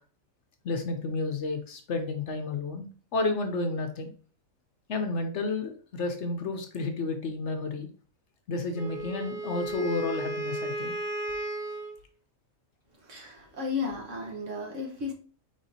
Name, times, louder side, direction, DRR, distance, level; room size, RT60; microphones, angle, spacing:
voice 1, 0.6-2.9 3.1-4.1 4.9-7.9 8.5-10.9, left 3 dB, 60° left, 1.0 m, -31 dB
Wind instrument woodwind instrument, 8.7-12.0, right 2 dB, 10° left, 1.2 m, -34 dB
voice 2, 13.0-15.1, left 4 dB, 60° right, 1.4 m, -34 dB
5.2 x 3.6 x 2.7 m
omnidirectional pair, 1.4 m